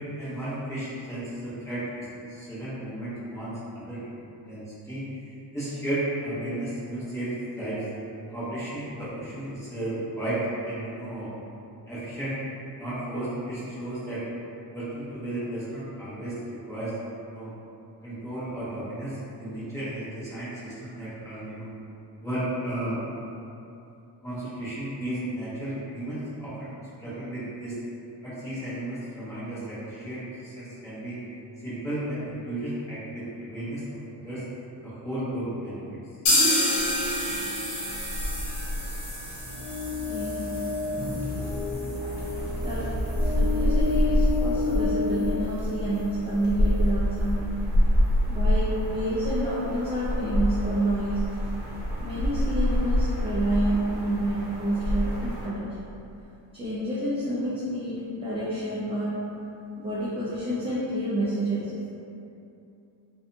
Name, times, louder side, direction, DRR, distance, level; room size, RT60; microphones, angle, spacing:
voice 1, 0.2-7.8 8.3-11.3 11.9-12.4 12.8-14.3 14.7-16.9 17.3-17.5 18.0-21.7 22.2-23.0 24.2-27.8 28.2-31.2 31.6-34.4 34.8-36.0, right 1 dB, 5° left, -13 dB, 0.9 m, -34 dB
sound 1, 36.3-44.0 44.3-44.4 44.7-44.8 45.2-45.3, left 1 dB, 70° left, 0.8 m, -30 dB
sound 2, 36.8-55.5, equal, 65° right, 0.7 m, -28 dB
sound 3, 39.4-46.3, left 4 dB, 40° left, 0.7 m, -31 dB
voice 2, 40.0-40.6 40.9-41.5 42.0-42.3 42.6-42.9 43.2-47.5 48.3-51.2 52.0-55.6 56.5-59.2 59.8-61.7, right 1 dB, 15° right, -11 dB, 0.3 m, -29 dB
2.6 x 2.3 x 2.6 m, 2.7 s
cardioid pair, 145°, 43 cm